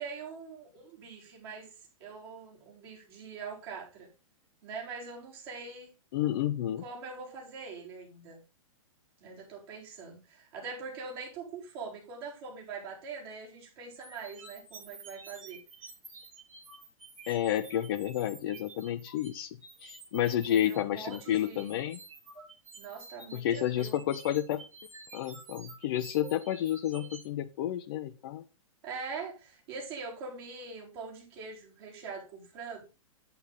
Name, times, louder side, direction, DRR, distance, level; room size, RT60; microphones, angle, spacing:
voice 1, 0.0-4.1 4.6-5.9 6.8-8.4 9.2-15.6 20.3-21.8 22.8-24.0 28.8-32.8, right 5 dB, 45° right, -3 dB, 4.5 m, -43 dB
voice 2, 6.1-6.8 17.3-22.0 23.3-24.6 25.1-28.4, left 11 dB, 40° left, 9 dB, 0.6 m, -31 dB
sound 1, 14.0-27.3, right 3 dB, 70° right, 6.4 m, -50 dB
8.5 x 8.0 x 4.0 m, 0.30 s
figure-of-eight pair, 110°, 18 cm